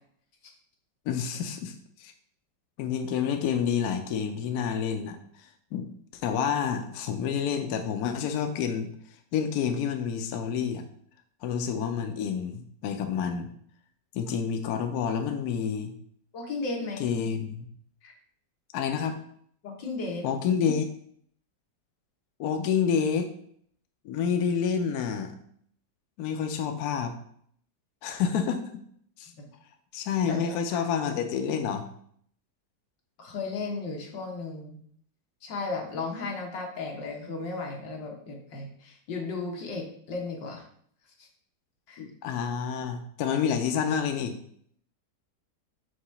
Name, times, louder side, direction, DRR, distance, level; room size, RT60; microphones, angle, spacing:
voice 1, 1.1-2.1 2.8-5.9 6.2-8.9 9.3-10.8 11.4-13.5 14.1-15.9 17.0-17.7 18.7-19.1 20.2-20.9 22.4-23.3 24.0-25.4 26.2-27.1 28.0-28.8 29.2-29.3 29.9-31.9 42.0-44.4, left 7 dB, 70° left, 6 dB, 1.1 m, -28 dB
voice 2, 16.3-17.1 18.0-18.1 19.6-20.3 29.4-29.5 30.3-30.9 33.2-34.8 35.4-40.6 41.2-41.3 41.9-42.0, left 3 dB, 90° left, 1 dB, 1.9 m, -35 dB
4.9 x 3.6 x 5.6 m, 0.64 s
omnidirectional pair, 1.9 m